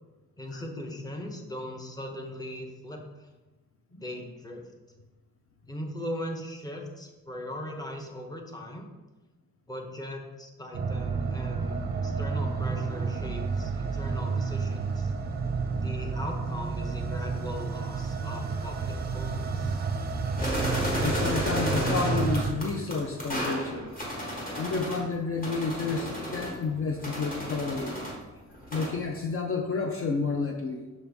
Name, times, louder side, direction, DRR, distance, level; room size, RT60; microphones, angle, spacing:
voice 1, 0.4-3.3 3.9-4.6 5.7-8.9 9.7-11.7 12.0-15.1 15.7-19.8, left 1 dB, 15° left, 2 dB, 0.7 m, -39 dB
sound 1, 10.7-22.5, right 4 dB, 30° right, 0.5 m, -30 dB
sound 2, 20.4-25.0 25.4-28.2 28.5-29.0, equal, 30° left, 1.4 m, -33 dB
voice 2, 21.0-23.9 24.5-28.0 28.7-30.8, left 4 dB, 45° left, 3 dB, 0.5 m, -30 dB
sound 3, 23.2-24.1 24.5-25.6 25.9-28.2, left 1 dB, 70° left, 1.3 m, -53 dB
6.1 x 5.5 x 3.4 m, 1.2 s
wide cardioid pair, 175°, 30 cm